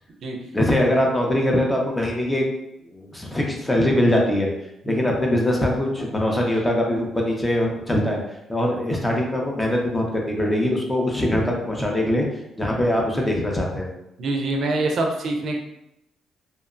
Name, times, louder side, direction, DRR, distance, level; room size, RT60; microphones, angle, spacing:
voice 1, 0.5-2.4 2.9-4.5 4.8-8.2 8.5-12.3 12.6-13.9, left 1 dB, 15° left, -1 dB, 0.6 m, -22 dB
voice 2, 14.2-15.6, right 2 dB, 65° right, 2 dB, 0.4 m, -25 dB
2.7 x 2.1 x 2.4 m, 0.85 s
cardioid pair, 90°, 0 cm